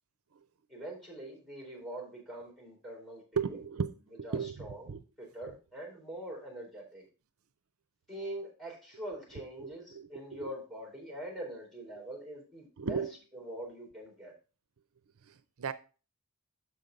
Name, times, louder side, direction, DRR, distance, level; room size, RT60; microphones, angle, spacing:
voice 1, 0.7-3.2 4.2-4.8 5.2-7.0 8.1-13.0 13.3-14.3, right 1 dB, ahead, 3.8 m, -43 dB
voice 2, 3.4-5.0 9.3-10.5 12.8-13.1 15.3-15.7, right 6 dB, 65° right, 0.6 m, -36 dB
7.0 x 5.6 x 5.1 m
head